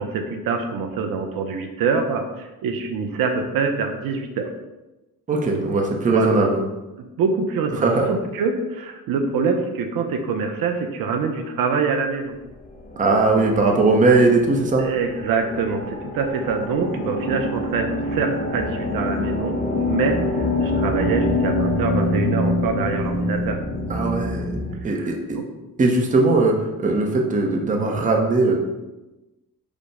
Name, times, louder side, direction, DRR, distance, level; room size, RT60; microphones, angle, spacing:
voice 1, 0.0-4.5 6.1-6.3 7.0-12.3 14.8-23.6 24.8-25.5, right 5 dB, 80° right, 5 dB, 0.6 m, -25 dB
voice 2, 5.3-6.6 7.8-8.1 13.0-14.9 23.9-24.5 24.8-25.4 25.8-28.6, right 3 dB, 25° right, 1 dB, 0.6 m, -19 dB
sound 1, 12.9-24.8, left 2 dB, 25° left, 0.6 m, -25 dB
5.2 x 2.1 x 4.7 m, 1.1 s
cardioid pair, 130°, 34 cm